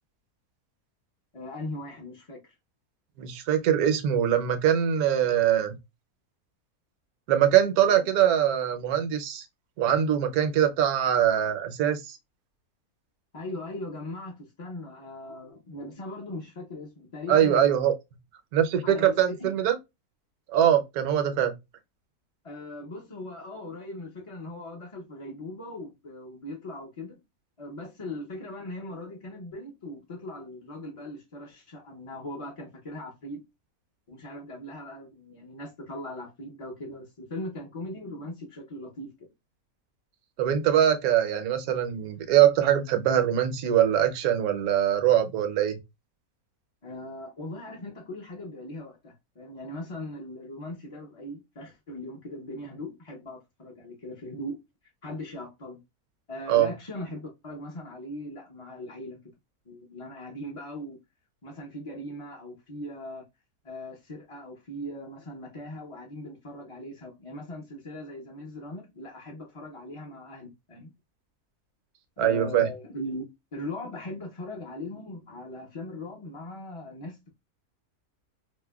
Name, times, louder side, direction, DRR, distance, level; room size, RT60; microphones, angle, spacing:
voice 1, 1.3-2.5 7.9-8.0 13.3-17.8 18.8-19.5 22.4-27.2 27.6-33.4 34.1-39.3 46.8-54.6 55.0-55.8 56.3-59.2 59.7-61.0 61.4-63.2 63.6-70.9 72.2-73.2 73.5-77.3, left 1 dB, 40° left, 0.5 m, -39 dB
voice 2, 3.2-5.7 7.3-9.4 9.8-12.2 17.3-17.9 18.5-19.8 20.5-21.5 40.4-45.8 56.5-56.7 72.2-72.7, right 10 dB, 75° right, 1.1 m, -23 dB
4.7 x 2.1 x 2.2 m
omnidirectional pair, 1.6 m